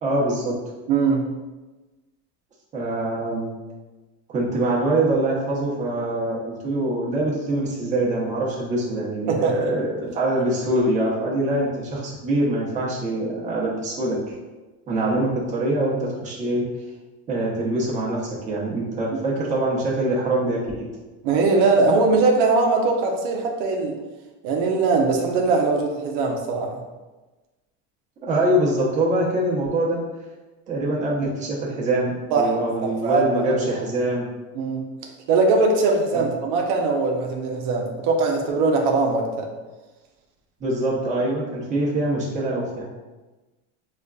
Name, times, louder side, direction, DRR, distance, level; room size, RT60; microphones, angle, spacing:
voice 1, 0.0-0.5 2.7-3.5 4.3-14.2 14.9-16.6 17.3-18.2 18.5-20.9 28.2-30.0 30.7-34.3 36.1-36.2 40.6-42.9, right 1 dB, 25° right, -5 dB, 0.7 m, -24 dB
voice 2, 0.9-1.3 9.3-9.6 21.2-24.0 24.4-26.8 32.3-33.6 34.5-34.8 35.3-39.5, right 3 dB, 80° right, 1 dB, 0.6 m, -21 dB
5.0 x 2.4 x 2.2 m, 1.2 s
cardioid pair, 165°, 30 cm